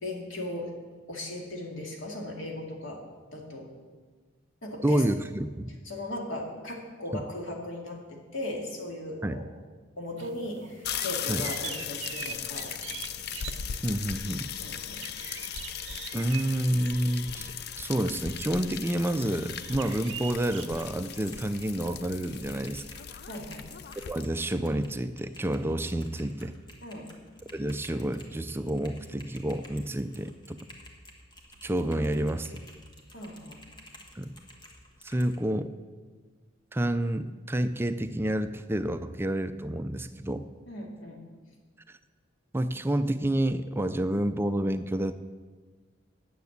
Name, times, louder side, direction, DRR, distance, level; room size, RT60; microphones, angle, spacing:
voice 1, 0.0-0.7 1.1-3.0 3.3-3.7 4.6-5.0 5.8-9.5 10.0-12.7 14.6-15.1 23.3-23.7 26.8-27.1 33.1-33.6 40.7-41.2, left 1 dB, 90° left, 0 dB, 2.1 m, -37 dB
voice 2, 4.8-5.7 7.1-7.2 9.2-9.4 11.3-11.5 13.3-13.5 13.8-14.5 16.1-17.5 17.8-22.8 24.1-26.5 27.5-30.6 31.6-32.5 34.2-34.3 35.0-35.7 36.7-40.4 41.9-42.0 42.5-45.1, right 1 dB, 10° right, 10 dB, 0.3 m, -29 dB
sound 1, 10.2-20.8, right 9 dB, 70° right, 0.6 m, -45 dB
sound 2, 10.8-24.2, left 8 dB, 55° left, 0.5 m, -38 dB
Typing, 19.9-35.4, left 1 dB, 25° left, 1.4 m, -52 dB
9.5 x 6.9 x 8.2 m, 1.4 s
head